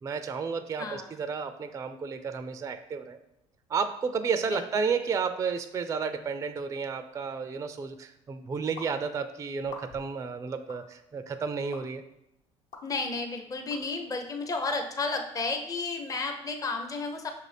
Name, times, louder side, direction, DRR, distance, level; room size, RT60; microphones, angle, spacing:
voice 1, 0.0-3.2 3.7-12.0, right 5 dB, 20° right, 10 dB, 0.3 m, -32 dB
voice 2, 0.8-1.1 4.5-4.6 12.8-17.3, left 3 dB, 25° left, 4 dB, 0.6 m, -32 dB
sound 1, 8.8-8.9 9.6-10.1 10.7-10.8 11.7-11.8 12.7-12.8 13.7-13.8 14.6-14.7, left 3 dB, 60° left, 0.8 m, -44 dB
6.0 x 2.5 x 3.3 m, 0.84 s
hypercardioid pair, 65°, 15 cm